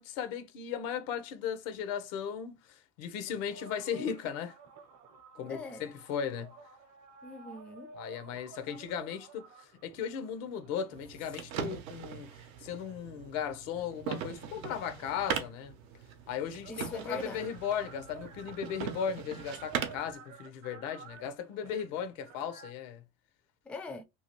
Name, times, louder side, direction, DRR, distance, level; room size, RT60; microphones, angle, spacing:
voice 1, 0.0-4.5 5.4-6.5 8.0-9.5 9.8-12.3 12.6-15.7 16.3-23.0, left 8 dB, 80° left, 0.7 m, -36 dB
sound 1, 3.3-12.1 12.7-14.4 15.6-15.7 15.9-22.7, right 5 dB, 45° right, 0.7 m, -53 dB
voice 2, 5.4-5.9 7.2-7.9 16.7-17.5 23.7-24.0, left 3 dB, 5° left, 0.3 m, -42 dB
sound 2, 10.9-20.1, right 8 dB, 85° right, 0.7 m, -40 dB
2.8 x 2.4 x 2.9 m
supercardioid pair, 95°, 39 cm